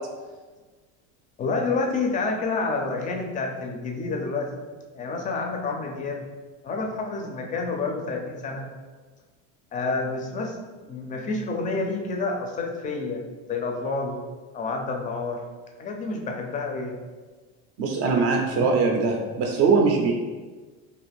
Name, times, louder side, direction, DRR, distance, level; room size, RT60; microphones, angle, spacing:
voice 1, 1.4-4.6 4.9-6.2 6.6-8.7 9.7-13.2 13.5-14.2 14.5-15.4 15.8-17.0 18.6-18.8, left 3 dB, 25° left, 2 dB, 0.4 m, -29 dB
voice 2, 17.8-20.1, right 4 dB, 45° right, 2 dB, 0.4 m, -21 dB
2.5 x 2.4 x 3.3 m, 1.3 s
supercardioid pair, 120°, 33 cm